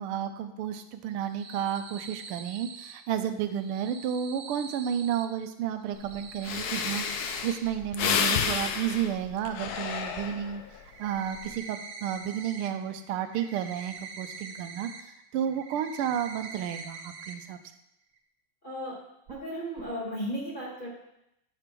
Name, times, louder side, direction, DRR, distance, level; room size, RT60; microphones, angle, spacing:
voice 1, 0.0-10.6 11.0-17.6, right 9 dB, 90° right, 8 dB, 1.5 m, -32 dB
sound 1, 1.1-2.9 3.5-5.3 5.8-7.6 9.6-9.7 10.1-10.2 10.7-12.7 13.0-15.0 15.4-17.3 17.7-17.8 18.2-18.3 19.3-19.4 19.8-19.9, right 5 dB, 70° right, 0.9 m, -44 dB
Breathing, 6.1-6.2 6.4-10.7 11.2-11.5, left 7 dB, 75° left, 0.8 m, -30 dB
voice 2, 18.6-19.0 19.3-20.9, equal, 25° left, -4 dB, 1.7 m, -35 dB
8.2 x 5.2 x 4.4 m, 0.84 s
omnidirectional pair, 2.3 m